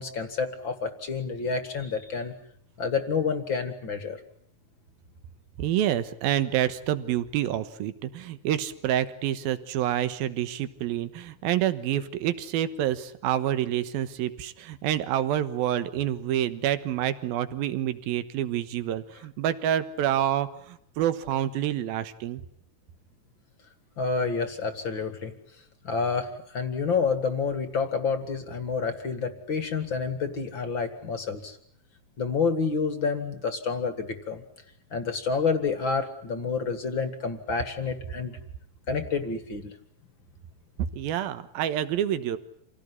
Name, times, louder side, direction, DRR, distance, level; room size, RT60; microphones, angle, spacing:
voice 1, 0.0-2.3 2.8-4.2 24.0-25.3 25.8-31.6 32.2-34.4 34.9-38.4 38.9-39.7, left 5 dB, 40° left, 9 dB, 2.0 m, -29 dB
voice 2, 5.6-22.4 40.9-42.4, right 11 dB, 80° right, 12 dB, 3.1 m, -28 dB
28.0 x 17.0 x 9.8 m, 0.68 s
omnidirectional pair, 4.2 m